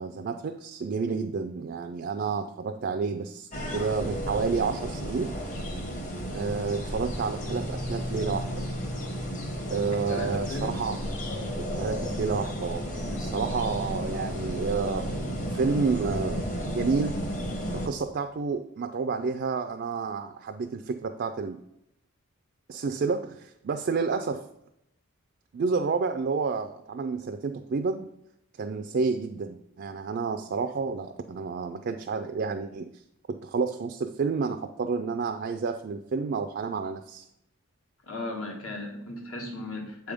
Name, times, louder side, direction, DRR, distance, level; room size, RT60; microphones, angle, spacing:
voice 1, 0.0-5.3 6.3-8.5 9.7-11.0 11.6-17.2 17.7-21.6 22.7-24.5 25.5-28.1 28.6-32.9 33.3-37.2, right 4 dB, 45° right, 7 dB, 0.3 m, -30 dB
sound 1, 3.5-17.9, equal, 35° left, 1.1 m, -33 dB
voice 2, 10.1-10.7 38.1-40.1, left 2 dB, 70° left, 0 dB, 1.6 m, -36 dB
7.6 x 3.5 x 5.0 m, 0.79 s
head